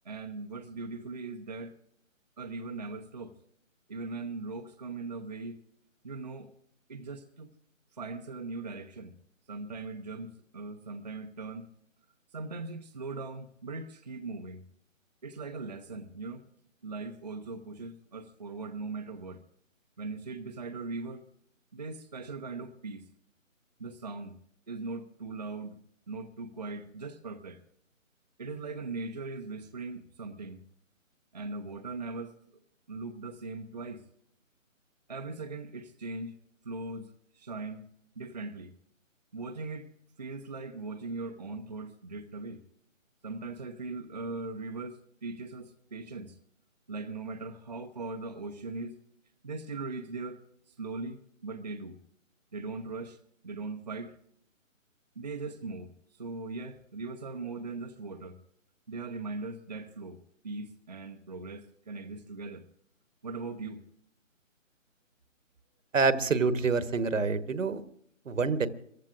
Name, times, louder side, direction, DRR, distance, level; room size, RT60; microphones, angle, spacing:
voice 1, 0.0-1.7 2.4-3.3 3.9-5.6 6.0-6.5 6.9-7.5 7.9-9.1 9.5-11.7 12.3-14.6 15.2-16.4 16.8-19.4 20.0-21.2 21.7-23.1 23.8-24.3 24.7-25.8 26.1-27.6 28.4-30.6 31.3-32.3 32.9-34.0 35.1-36.3 36.6-37.8 38.2-38.7 39.3-39.9 40.2-42.6 43.2-46.4 46.9-49.0 49.4-52.0 52.5-53.2 53.4-54.1 55.2-58.4 58.9-60.2 60.4-62.6 63.2-63.8, right 3 dB, 30° right, 0.7 m, -39 dB
voice 2, 65.9-67.8 68.3-68.7, right 4 dB, 70° right, 1.3 m, -26 dB
28.0 x 15.0 x 2.5 m
hypercardioid pair, 165°, 40 cm